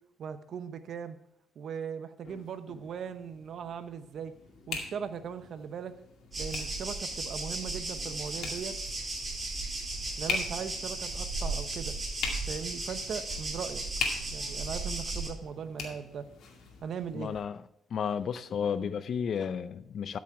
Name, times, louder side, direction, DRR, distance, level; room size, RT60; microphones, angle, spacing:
voice 1, 0.2-1.2 1.6-4.3 4.7-5.9 6.4-8.7 10.2-12.0 12.5-13.8 14.3-16.3 16.8-17.3, right 7 dB, 65° right, 10 dB, 0.9 m, -39 dB
sound 1, 2.2-17.4, left 5 dB, 75° left, 2.3 m, -42 dB
sound 2, 6.3-15.3, right 2 dB, 25° right, 4.3 m, -35 dB
voice 2, 17.1-17.6 17.9-20.2, left 7 dB, 60° left, 14 dB, 0.5 m, -32 dB
13.0 x 6.3 x 4.7 m, 0.76 s
cardioid pair, 90°, 0 cm